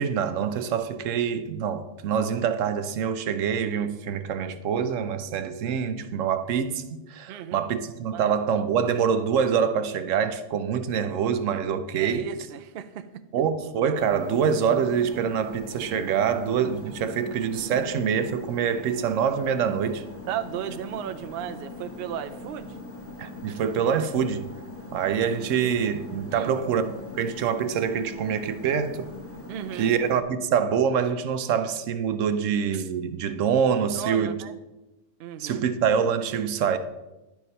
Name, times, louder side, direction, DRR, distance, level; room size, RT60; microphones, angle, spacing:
voice 1, 0.0-6.8 7.1-12.3 13.3-20.0 23.2-24.5 24.9-29.1 29.7-34.4 35.4-36.8, right 7 dB, 80° right, 1.0 m, -25 dB
voice 2, 7.3-7.7 8.1-8.3 11.9-13.1 20.3-22.8 26.3-26.6 29.5-29.9 33.9-34.5 35.2-35.7, right 9 dB, 60° right, 0.7 m, -34 dB
sound 1, 13.9-30.2, left 2 dB, 10° left, 1.0 m, -41 dB
10.5 x 4.7 x 5.4 m
omnidirectional pair, 1.3 m